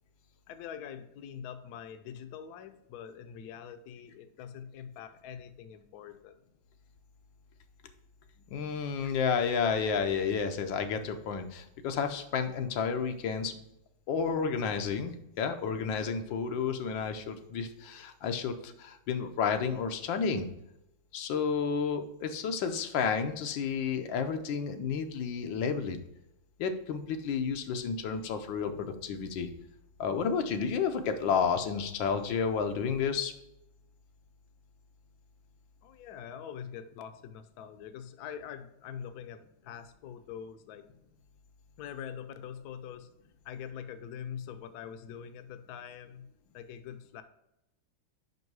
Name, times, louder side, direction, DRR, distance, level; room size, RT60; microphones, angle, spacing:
voice 1, 0.5-6.4 35.8-40.8 41.8-43.1 43.4-46.3 46.5-47.2, left 8 dB, 70° left, 10 dB, 1.0 m, -44 dB
voice 2, 8.5-13.6 14.1-20.5 21.1-26.0 26.6-29.5 30.0-33.3, left 6 dB, 85° left, 7 dB, 1.5 m, -31 dB
5.4 x 5.3 x 4.6 m, 0.86 s
omnidirectional pair, 2.0 m